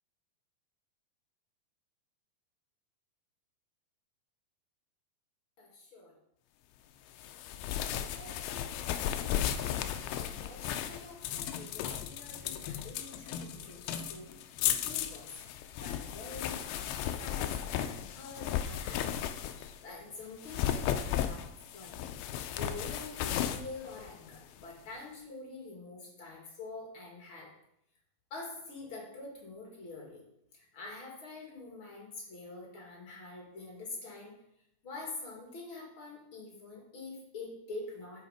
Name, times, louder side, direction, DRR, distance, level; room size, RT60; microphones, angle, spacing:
voice 1, 5.6-6.1 8.0-9.1 10.3-14.3 14.8-15.3 15.8-19.2 19.8-21.4 21.7-22.0 22.5-27.5 28.3-30.2 30.5-34.4 34.8-38.2, left 3 dB, 40° left, -2 dB, 2.5 m, -46 dB
sound 1, 7.2-19.8 20.3-24.7, left 10 dB, 85° left, 2.5 m, -35 dB
7.8 x 6.5 x 5.0 m, 0.78 s
omnidirectional pair, 4.3 m